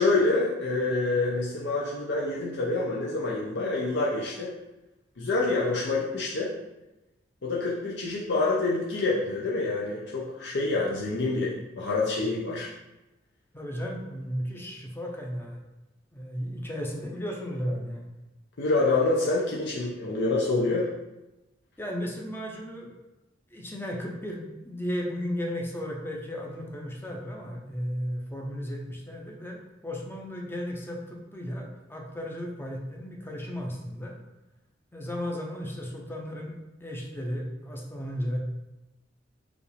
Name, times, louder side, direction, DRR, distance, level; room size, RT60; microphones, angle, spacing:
voice 1, 0.0-4.5 5.2-6.5 7.4-12.7 18.6-20.9, left 3 dB, 65° left, -4 dB, 0.6 m, -27 dB
voice 2, 13.5-15.6 16.1-18.1 21.8-23.0 23.5-34.2 34.9-36.5 36.8-38.4, equal, 10° left, -1 dB, 0.6 m, -34 dB
4.9 x 2.5 x 3.3 m, 1.0 s
head